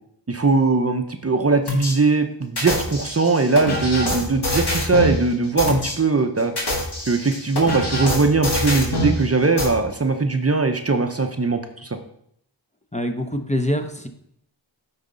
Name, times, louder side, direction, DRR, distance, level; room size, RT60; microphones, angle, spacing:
voice 1, 0.3-6.5 7.1-12.0, right 3 dB, 30° right, 6 dB, 0.7 m, -20 dB
sound 1, 1.7-1.9 2.6-5.2 5.6-5.9 6.4-9.2 9.6-9.7, left 1 dB, 60° left, 2.2 m, -24 dB
voice 2, 12.9-14.1, equal, 15° left, 5 dB, 0.7 m, -24 dB
9.1 x 4.0 x 3.9 m, 0.72 s
cardioid pair, 45°, 46 cm